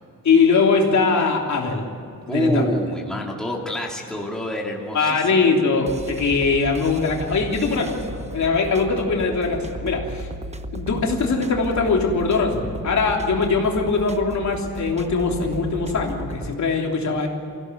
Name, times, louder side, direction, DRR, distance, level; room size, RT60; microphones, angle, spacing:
voice 1, 0.2-1.8 2.3-2.6 4.9-10.3 10.7-17.3, left 4 dB, 55° left, 0 dB, 3.3 m, -21 dB
voice 2, 2.3-5.4, equal, ahead, -2 dB, 2.7 m, -26 dB
sound 1, 5.9-16.5, right 1 dB, 20° right, 1.0 m, -35 dB
25.0 x 16.5 x 8.0 m, 2.5 s
wide cardioid pair, 160°, 34 cm